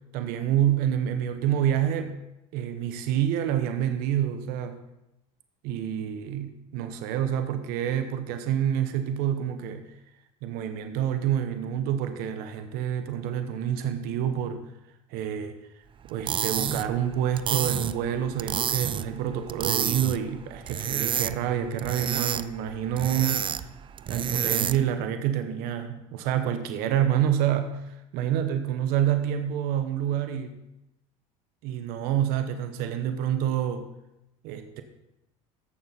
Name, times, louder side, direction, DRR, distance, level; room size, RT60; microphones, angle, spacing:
voice 1, 0.1-2.1 2.5-4.8 5.6-9.9 10.4-14.6 15.1-15.6 16.1-23.7 24.1-27.8 28.1-30.6 31.6-33.9 34.4-34.8, right 10 dB, 65° right, 8 dB, 1.0 m, -27 dB
sound 1, 16.1-25.0, right 9 dB, 30° right, 0.4 m, -30 dB
14.0 x 7.0 x 4.0 m, 0.89 s
supercardioid pair, 85°, 17 cm